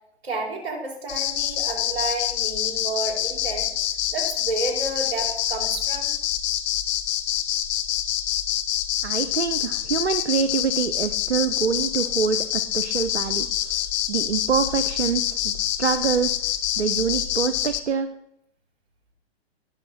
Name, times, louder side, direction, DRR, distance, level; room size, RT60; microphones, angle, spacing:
voice 1, 0.2-3.7 4.1-6.1, right 2 dB, 70° right, 0 dB, 4.2 m, -30 dB
sound 1, 1.1-17.8, left 12 dB, 40° left, 1.0 m, -26 dB
voice 2, 9.0-18.1, right 6 dB, 85° right, 10 dB, 0.9 m, -26 dB
19.0 x 6.5 x 4.2 m, 0.78 s
hypercardioid pair, 125°, 33 cm